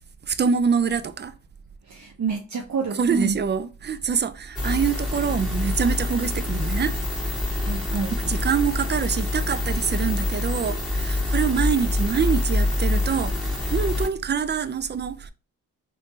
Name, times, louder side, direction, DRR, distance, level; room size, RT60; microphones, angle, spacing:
voice 1, 0.3-1.3 2.9-7.0 8.2-15.3, right 6 dB, 30° right, 0.4 m, -25 dB
voice 2, 1.9-3.4 7.6-8.2, right 5 dB, 50° right, 0.8 m, -28 dB
sound 1, 4.5-14.1, left 2 dB, ahead, 1.7 m, -26 dB
3.4 x 2.6 x 2.7 m
supercardioid pair, 45°, 38 cm